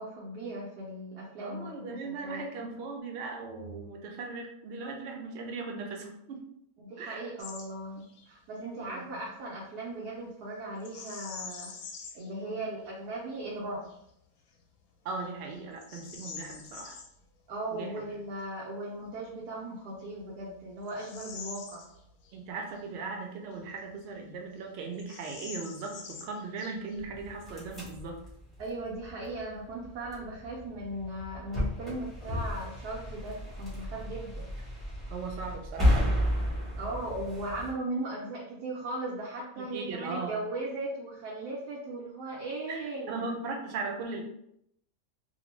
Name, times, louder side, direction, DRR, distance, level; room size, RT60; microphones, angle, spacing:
voice 1, 0.0-2.4 6.8-11.7 12.1-13.9 17.5-21.9 28.6-34.5 36.8-43.3, right 2 dB, 85° right, -5 dB, 1.2 m, -38 dB
voice 2, 1.4-6.4 7.0-7.3 8.8-9.2 12.4-12.6 15.0-17.0 17.7-17.9 22.3-28.2 35.1-36.1 39.6-40.4 42.7-44.2, right 4 dB, 70° right, 2 dB, 0.6 m, -38 dB
Bird vocalization bird call bird song, 7.4-7.7 8.0-8.3 10.8-12.3 12.9-13.0 13.6-14.0 14.5-14.6 15.2-17.1 19.2-19.3 19.9-22.4 22.7-22.8 23.5-24.3 24.6-24.7 24.9-27.1, left 5 dB, 80° left, 1.0 m, -45 dB
sound 1, 27.0-37.7, equal, ahead, 0.6 m, -33 dB
2.9 x 2.0 x 3.0 m, 0.75 s
omnidirectional pair, 1.6 m